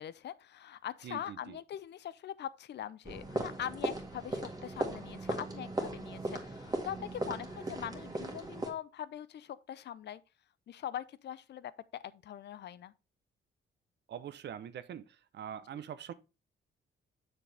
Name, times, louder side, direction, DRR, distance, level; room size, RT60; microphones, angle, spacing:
voice 1, 0.0-10.2 10.7-12.9 15.7-15.8, left 10 dB, 60° left, 0.6 m, -42 dB
voice 2, 1.0-1.6 14.1-16.1, right 9 dB, 60° right, 0.8 m, -44 dB
sound 1, 3.0-8.7, right 1 dB, 20° right, 1.9 m, -38 dB
7.5 x 6.3 x 3.3 m
cardioid pair, 90°, 20 cm